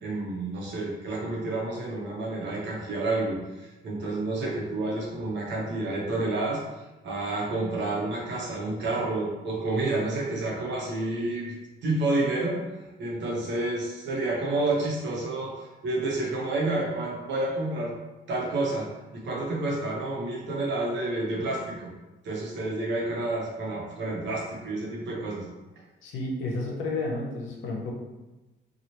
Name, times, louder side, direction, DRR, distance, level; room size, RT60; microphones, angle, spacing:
voice 1, 0.0-6.6 7.0-11.5 11.8-12.6 13.0-17.9 18.3-21.9 22.2-25.5, right 2 dB, 65° right, -3 dB, 0.9 m, -29 dB
voice 2, 26.0-28.0, left 2 dB, 85° left, 0 dB, 0.7 m, -31 dB
3.0 x 2.4 x 2.9 m, 1.1 s
cardioid pair, 90°, 20 cm